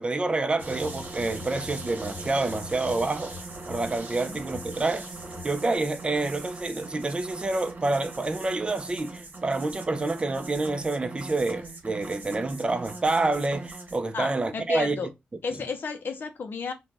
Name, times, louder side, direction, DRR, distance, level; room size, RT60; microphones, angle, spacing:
voice 1, 0.0-3.3 3.7-5.1 5.4-15.1, right 2 dB, 25° right, 0.4 m, -28 dB
sound 1, 0.6-14.0, right 2 dB, 55° right, 0.9 m, -40 dB
voice 2, 14.1-15.1 15.4-16.7, left 4 dB, 65° left, 0.4 m, -32 dB
2.5 x 2.1 x 3.2 m
cardioid pair, 70°, 4 cm